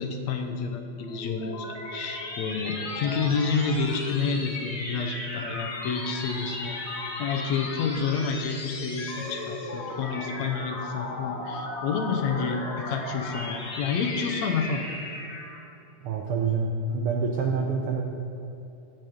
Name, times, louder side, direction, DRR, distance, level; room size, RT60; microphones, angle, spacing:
voice 1, 0.0-6.8 7.2-14.8, left 5 dB, 75° left, 5 dB, 2.0 m, -29 dB
sound 1, 1.0-15.7, left 2 dB, 35° left, 1.0 m, -36 dB
voice 2, 16.0-18.0, right 4 dB, 75° right, 1 dB, 1.3 m, -27 dB
15.0 x 6.1 x 5.3 m, 2.9 s
omnidirectional pair, 3.4 m